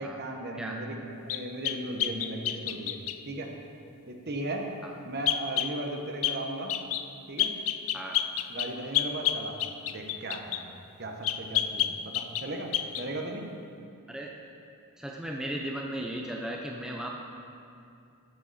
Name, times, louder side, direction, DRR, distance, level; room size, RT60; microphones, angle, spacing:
voice 1, 0.0-3.0 3.3-3.5 4.1-4.7 5.0-6.8 7.3-7.5 8.5-9.6 9.9-10.7 11.0-13.5, right 1 dB, 45° right, 2 dB, 1.1 m, -36 dB
sound 1, 1.3-3.2 5.3-5.7 6.2-6.4 6.7-7.1 7.4-10.6 11.2-12.5 12.7-13.1, left 12 dB, 65° left, 0.5 m, -29 dB
voice 2, 15.0-17.1, right 1 dB, 5° right, -1 dB, 0.6 m, -36 dB
14.0 x 8.4 x 4.2 m, 2.6 s
head